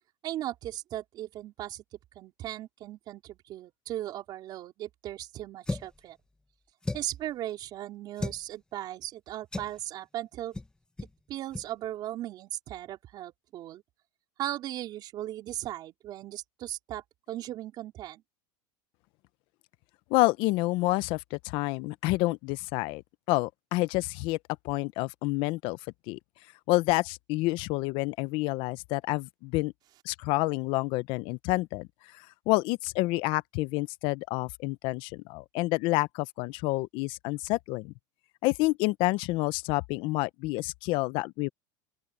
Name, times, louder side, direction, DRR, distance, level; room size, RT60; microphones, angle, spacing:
voice 1, 0.2-1.8 2.2-6.2 6.9-10.6 11.3-13.8 14.4-18.2, right 13 dB, 45° right, 4.0 m, -37 dB
sound 1, 5.7-6.0 6.8-7.2 8.2-8.4 9.5-9.8 10.5-10.7 11.0-11.2 11.5-11.7, left 2 dB, 10° left, 1.2 m, -35 dB
voice 2, 20.1-23.0 23.3-24.4 24.6-25.8 26.1-26.2 26.7-29.7 30.0-31.9 32.1-37.9 38.4-41.5, left 21 dB, 55° left, 0.7 m, -28 dB
open air
supercardioid pair, 130°, 10 cm